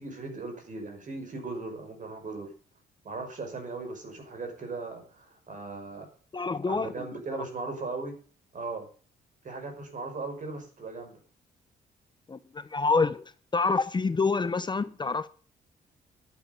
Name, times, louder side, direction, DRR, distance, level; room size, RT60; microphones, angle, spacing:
voice 1, 0.0-2.5 3.0-6.1 6.4-8.1 8.5-8.9 9.4-11.1, right 3 dB, 50° right, 5.8 m, -38 dB
voice 2, 6.3-7.1 12.3-13.2 13.5-15.3, left 4 dB, 25° left, 0.8 m, -27 dB
12.0 x 8.9 x 7.0 m
cardioid pair, 75°, 17 cm